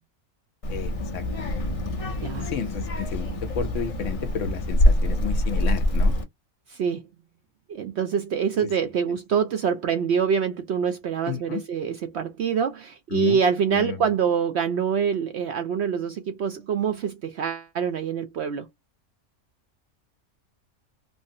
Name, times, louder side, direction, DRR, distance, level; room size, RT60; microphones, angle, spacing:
Child speech kid speaking, 0.6-6.2, left 1 dB, 40° left, 0.5 m, -24 dB
voice 1, 0.7-1.6 2.4-6.1 8.6-8.7 11.3-11.6 13.1-13.4 13.7-14.0, left 7 dB, 65° left, 1.0 m, -32 dB
voice 2, 2.2-2.5 6.7-7.0 7.7-18.7, right 7 dB, 65° right, 0.7 m, -25 dB
3.4 x 2.0 x 2.6 m
omnidirectional pair, 1.5 m